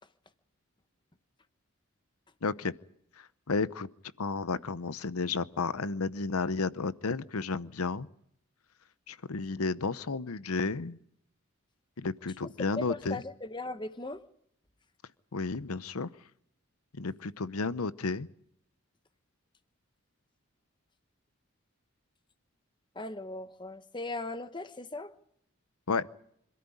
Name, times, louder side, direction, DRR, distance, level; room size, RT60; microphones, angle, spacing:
voice 1, 2.4-2.7 3.5-3.9 4.2-8.1 9.1-11.0 12.0-13.2 15.3-16.1 17.0-18.3 25.9-26.0, left 4 dB, 90° left, 16 dB, 0.8 m, -32 dB
voice 2, 12.4-14.2 22.9-25.1, left 2 dB, 20° left, 11 dB, 1.1 m, -38 dB
26.0 x 13.5 x 9.8 m, 0.72 s
head